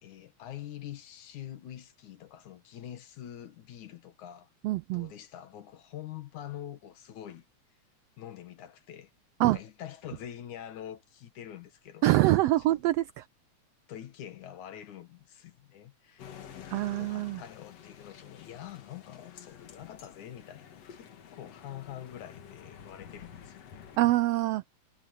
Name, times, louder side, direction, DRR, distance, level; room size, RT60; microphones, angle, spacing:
voice 1, 0.0-4.5 4.9-7.5 8.2-9.1 9.4-12.0 12.6-12.8 13.9-23.9, left 11 dB, 85° left, 3.0 m, -45 dB
voice 2, 4.6-5.1 9.4-9.6 12.0-13.2 16.7-17.4 24.0-24.7, right 16 dB, 85° right, 1.4 m, -25 dB
sound 1, 16.2-24.0, left 8 dB, 60° left, 2.7 m, -50 dB
omnidirectional pair, 3.3 m